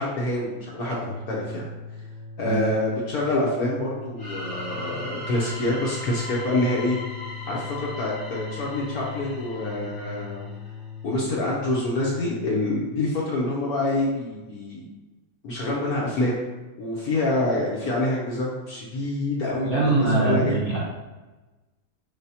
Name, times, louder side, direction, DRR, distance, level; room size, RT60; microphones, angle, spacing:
voice 1, 0.0-1.7 2.4-7.0 7.5-10.4 11.0-14.9 15.4-16.4 16.8-20.6, left 1 dB, 60° left, -4 dB, 1.0 m, -26 dB
sound 1, 1.0-12.8, left 5 dB, 40° left, 0.7 m, -39 dB
sound 2, 4.2-10.8, left 1 dB, 15° left, 1.0 m, -39 dB
voice 2, 19.6-20.8, right 2 dB, 45° right, -7 dB, 1.1 m, -22 dB
4.8 x 3.4 x 2.7 m, 1.2 s
omnidirectional pair, 2.1 m